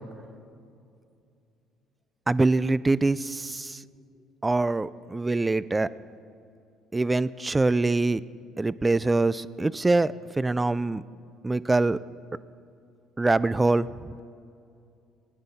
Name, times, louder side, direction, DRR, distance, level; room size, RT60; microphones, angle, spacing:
voice 1, 2.3-3.8 4.4-5.9 6.9-8.2 8.6-11.0 11.4-12.0 13.2-14.1, right 2 dB, 15° right, 18 dB, 0.3 m, -24 dB
18.5 x 9.7 x 4.2 m, 2.5 s
cardioid pair, 100°, 0 cm